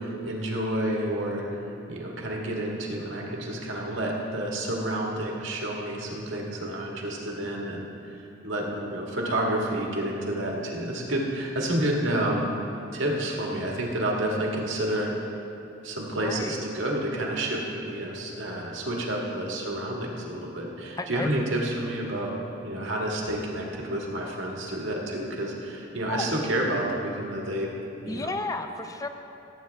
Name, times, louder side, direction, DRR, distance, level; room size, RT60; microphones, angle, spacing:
voice 1, 0.0-1.4 1.9-15.1 15.8-22.3 22.6-27.7 28.0-28.3, right 1 dB, 80° right, -2 dB, 1.7 m, -29 dB
voice 2, 16.2-16.7 21.0-21.3 26.1-26.4 28.1-29.1, left 2 dB, 20° left, 7 dB, 0.5 m, -33 dB
17.5 x 8.5 x 3.4 m, 2.8 s
head